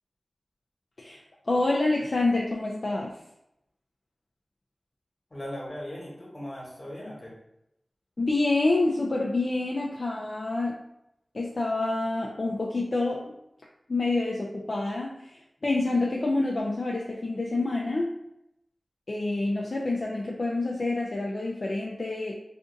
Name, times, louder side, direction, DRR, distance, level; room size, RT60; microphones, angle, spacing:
voice 1, 1.0-3.1 8.2-10.8 11.3-13.3 13.9-18.1 19.1-22.3, left 2 dB, 60° left, -3 dB, 0.4 m, -27 dB
voice 2, 5.3-7.3, left 1 dB, 35° left, -4 dB, 1.2 m, -38 dB
2.5 x 2.5 x 3.8 m, 0.82 s
wide cardioid pair, 65°, 0 cm